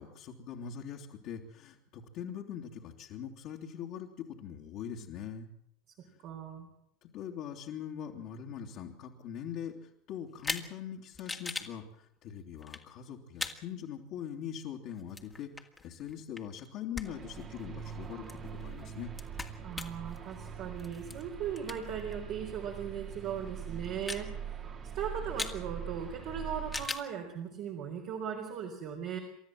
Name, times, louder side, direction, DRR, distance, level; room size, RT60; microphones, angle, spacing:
voice 1, 0.0-5.5 7.1-9.7 10.1-11.8 12.2-15.5 15.8-18.2 18.5-19.1, left 9 dB, 55° left, -2 dB, 2.8 m, -42 dB
voice 2, 6.2-6.7 19.6-24.4 24.9-29.2, right 8 dB, 55° right, 1 dB, 4.0 m, -38 dB
sound 1, 10.4-10.7 11.1-11.7 12.6-12.8 13.4-13.6 14.9-16.7 16.9-17.1 17.4-22.1 22.5-22.6 23.3-23.5 23.8-24.2 25.4-25.6 26.7-27.1, left 3 dB, 15° left, 2.2 m, -40 dB
sound 2, 17.0-26.9, right 7 dB, 40° right, 2.8 m, -43 dB
29.0 x 13.0 x 7.7 m, 0.76 s
hypercardioid pair, 80°, 0 cm